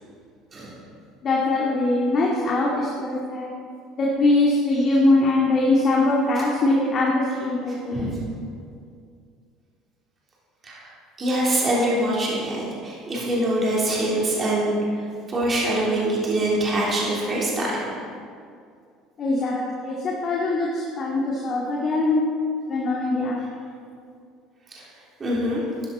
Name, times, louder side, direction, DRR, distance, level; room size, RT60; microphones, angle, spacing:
voice 1, 1.2-3.5 4.0-8.3 19.2-22.3 22.7-23.4, left 2 dB, 45° left, -4 dB, 2.1 m, -22 dB
voice 2, 7.7-8.2 10.6-10.9 11.2-17.9 24.7-24.8 25.2-25.6, right 1 dB, 35° right, -5 dB, 3.5 m, -24 dB
13.5 x 10.5 x 4.2 m, 2.3 s
hypercardioid pair, 70°, 0 cm